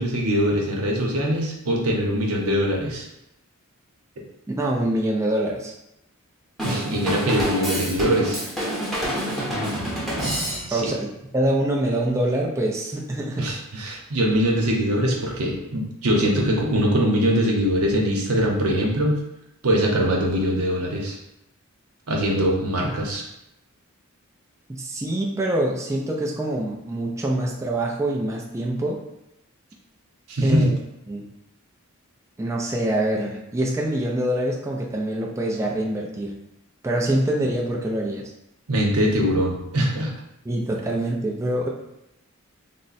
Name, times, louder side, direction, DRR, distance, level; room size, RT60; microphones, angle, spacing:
voice 1, 0.0-3.1 6.6-8.5 10.7-10.9 13.4-19.2 19.6-21.2 22.1-23.3 30.3-30.7 38.7-40.1, equal, 85° right, 0 dB, 0.8 m, -22 dB
voice 2, 4.6-5.7 10.7-11.1 11.3-13.5 24.7-29.0 30.4-30.7 31.1-31.3 32.4-36.4 36.8-38.3 40.5-41.7, right 1 dB, 15° right, -2 dB, 0.4 m, -25 dB
Drum kit / Drum, 6.6-11.0, equal, ahead, 0.9 m, -27 dB
3.5 x 2.1 x 4.0 m, 0.85 s
head